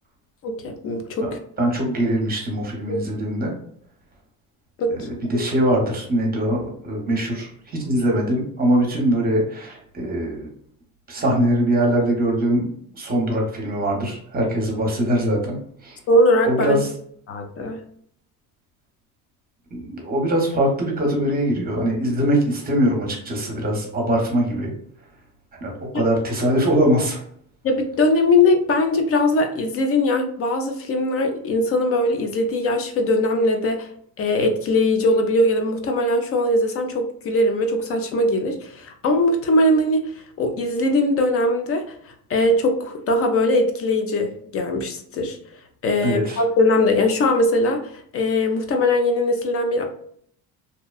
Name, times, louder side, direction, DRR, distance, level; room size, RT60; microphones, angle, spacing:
voice 1, 0.4-1.4 2.9-3.0 4.8-5.1 16.1-16.8 17.3-17.8 27.6-33.9 34.2-40.0 40.4-45.4 45.8-49.8, left 1 dB, 35° left, 5 dB, 0.4 m, -20 dB
voice 2, 1.2-3.6 4.9-10.5 11.1-15.6 15.8-16.0 16.4-16.9 19.7-24.7 25.6-27.2 46.0-46.4, right 1 dB, 20° right, 1 dB, 0.8 m, -22 dB
2.7 x 2.1 x 2.3 m, 0.63 s
cardioid pair, 120°, 40 cm